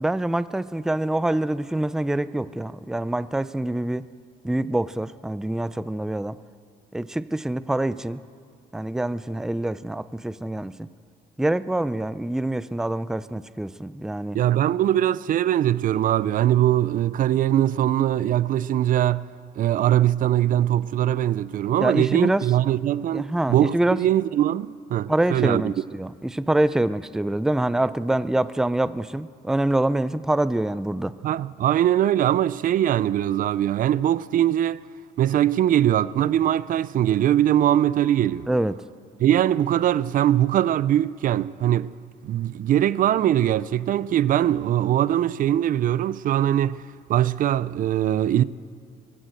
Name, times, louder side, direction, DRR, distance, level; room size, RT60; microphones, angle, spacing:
voice 1, 0.0-4.1 4.4-6.4 6.9-8.2 8.7-10.9 11.4-14.4 21.8-22.5 23.1-24.0 25.1-31.1 38.5-38.8, right 1 dB, 5° right, 0.5 m, -25 dB
voice 2, 14.3-19.3 19.6-25.7 31.2-34.8 35.2-38.5 39.2-41.9 42.2-46.8 47.1-48.4, right 11 dB, 55° right, 0.5 m, -21 dB
23.0 x 14.5 x 7.8 m
cardioid pair, 110°, 17 cm